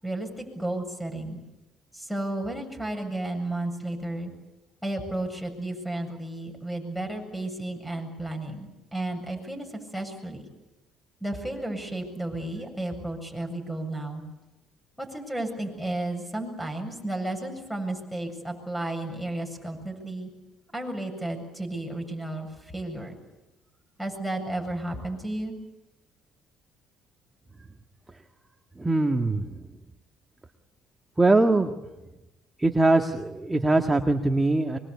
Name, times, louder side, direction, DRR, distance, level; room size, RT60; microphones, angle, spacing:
voice 1, 0.0-1.4 1.9-4.3 4.8-10.4 11.2-14.2 15.0-20.3 20.7-23.1 24.0-25.6, right 1 dB, 5° left, 5 dB, 7.8 m, -33 dB
voice 2, 28.8-29.6 31.2-31.7 32.6-34.8, right 2 dB, 15° right, 4 dB, 1.8 m, -22 dB
25.0 x 23.5 x 8.5 m, 1.0 s
supercardioid pair, 85°, 0 cm